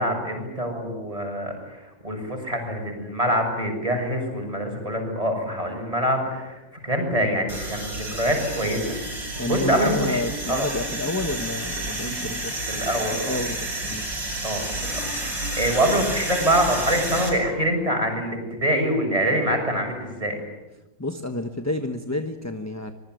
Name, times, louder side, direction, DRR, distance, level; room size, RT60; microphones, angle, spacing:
voice 1, 0.0-10.2 10.5-10.7 12.7-13.4 14.4-20.4, equal, 20° right, 3 dB, 7.2 m, -25 dB
sound 1, 7.5-17.3, right 1 dB, 90° right, 7.6 m, -30 dB
voice 2, 9.4-12.5 13.1-14.0 21.0-22.9, left 2 dB, 10° left, 7 dB, 1.0 m, -29 dB
25.0 x 22.5 x 9.4 m, 1.0 s
omnidirectional pair, 2.0 m